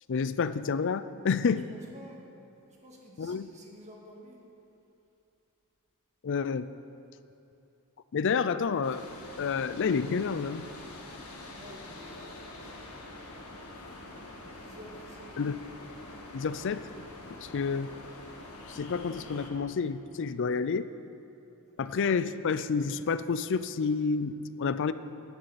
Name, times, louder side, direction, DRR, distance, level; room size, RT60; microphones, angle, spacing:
voice 1, 0.1-1.7 3.2-3.5 6.2-6.7 8.1-9.1 9.4-10.7 15.4-15.6 16.3-16.8 17.4-17.9 18.7-20.9 21.8-24.9, left 5 dB, 55° left, 13 dB, 0.4 m, -29 dB
voice 2, 1.5-2.3 2.7-4.5 11.5-12.4 14.4-15.3 17.2-17.5 21.7-22.0, equal, 30° right, -2 dB, 2.0 m, -52 dB
sound 1, 8.8-19.5, left 2 dB, 75° left, 1.8 m, -45 dB
16.0 x 11.0 x 4.2 m, 2.8 s
head